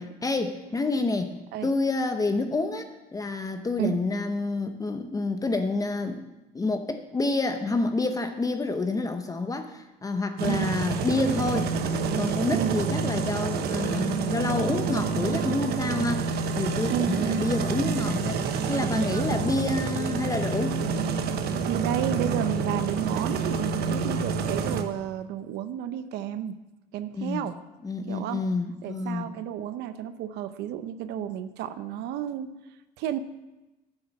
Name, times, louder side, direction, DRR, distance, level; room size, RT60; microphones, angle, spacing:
voice 1, 0.2-1.3 1.6-6.3 6.5-11.7 12.2-20.8 27.1-27.5 27.8-29.3, left 3 dB, 20° left, 7 dB, 0.8 m, -28 dB
sound 1, 10.4-24.8, right 5 dB, 70° right, 1.1 m, -28 dB
voice 2, 16.9-17.5 19.3-19.4 21.6-26.6 26.9-27.6 28.1-28.4 28.8-32.5 33.0-33.2, right 10 dB, 85° right, 11 dB, 0.7 m, -31 dB
10.5 x 8.0 x 7.0 m, 1.0 s
cardioid pair, 110°, 17 cm